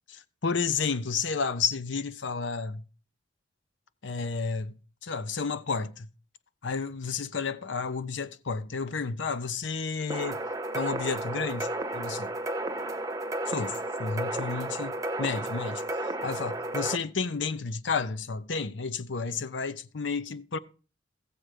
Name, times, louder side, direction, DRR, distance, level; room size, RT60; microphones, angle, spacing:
voice 1, 0.1-2.8 4.0-4.8 5.0-6.1 6.6-10.4 10.7-12.3 13.5-20.6, left 5 dB, 80° left, 0.7 m, -31 dB
sound 1, 10.1-17.0, right 1 dB, 20° right, 0.7 m, -33 dB
14.5 x 7.8 x 4.9 m
head